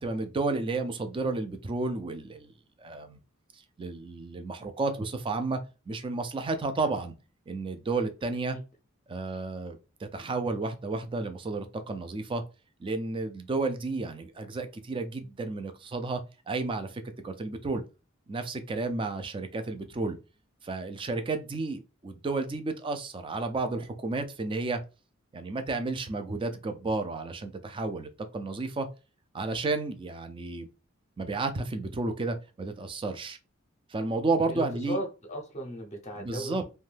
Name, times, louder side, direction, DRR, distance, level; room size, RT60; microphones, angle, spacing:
voice 1, 0.0-2.5 2.8-3.2 3.5-5.6 5.9-7.1 7.5-8.6 9.1-12.4 12.8-17.8 18.3-20.2 20.6-24.8 25.3-28.9 29.3-30.7 31.2-33.4 33.9-35.0 36.2-36.6, right 3 dB, 25° right, 0.3 m, -32 dB
voice 2, 34.5-36.7, equal, 35° left, 0.6 m, -36 dB
2.6 x 2.2 x 3.2 m
head